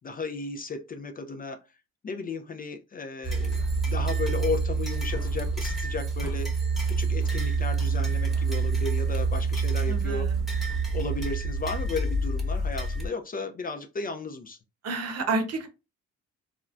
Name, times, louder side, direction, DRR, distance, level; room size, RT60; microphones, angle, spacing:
voice 1, 0.0-1.6 2.0-10.3 10.9-14.6, left 3 dB, 30° left, 0.4 m, -34 dB
sound 1, 3.2-13.1, right 4 dB, ahead, 1.0 m, -27 dB
voice 2, 9.9-10.2 14.8-15.7, right 3 dB, 55° right, 0.8 m, -29 dB
3.6 x 2.1 x 2.3 m
cardioid pair, 90°, 30 cm